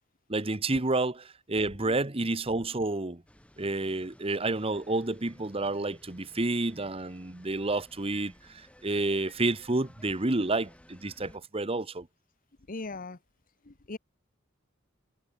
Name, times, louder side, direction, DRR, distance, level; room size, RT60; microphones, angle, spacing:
voice 1, 0.3-3.2 3.6-12.1, right 2 dB, 30° right, 1.2 m, -30 dB
sound 1, 3.3-11.4, equal, 5° left, 3.5 m, -57 dB
voice 2, 12.7-13.2 13.7-14.0, left 3 dB, 45° left, 1.1 m, -39 dB
head